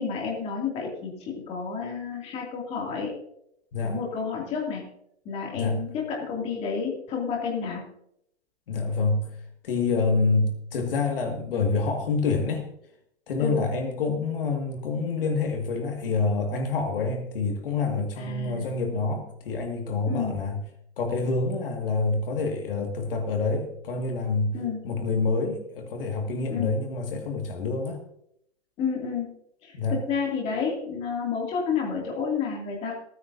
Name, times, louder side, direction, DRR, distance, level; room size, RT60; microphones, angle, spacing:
voice 1, 0.0-3.1 3.8-4.8 5.2-7.8 13.4-13.7 18.2-18.7 20.1-20.4 24.5-24.8 26.5-26.7 28.8-29.3 29.6-32.9, left 5 dB, 15° left, -2 dB, 2.6 m, -30 dB
voice 2, 8.7-9.3 9.6-12.7 13.3-20.6 21.0-24.6 24.8-28.0 29.7-30.0, left 4 dB, 50° left, 3 dB, 2.1 m, -27 dB
26.5 x 9.3 x 2.7 m, 0.75 s
hypercardioid pair, 165°, 35 cm